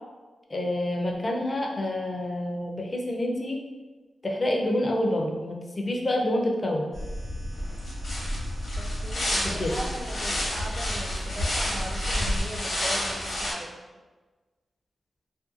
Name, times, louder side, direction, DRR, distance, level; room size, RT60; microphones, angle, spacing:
voice 1, 0.5-3.6 4.2-6.9 9.4-9.7, left 1 dB, 40° left, 1 dB, 0.4 m, -27 dB
sound 1, 6.9-12.4, equal, 85° right, 0.8 m, -32 dB
sound 2, 7.5-13.5, left 1 dB, 70° left, 0.7 m, -31 dB
voice 2, 8.8-13.8, right 1 dB, 30° right, -1 dB, 0.5 m, -39 dB
2.6 x 2.2 x 2.4 m, 1.3 s
cardioid pair, 60°, 0 cm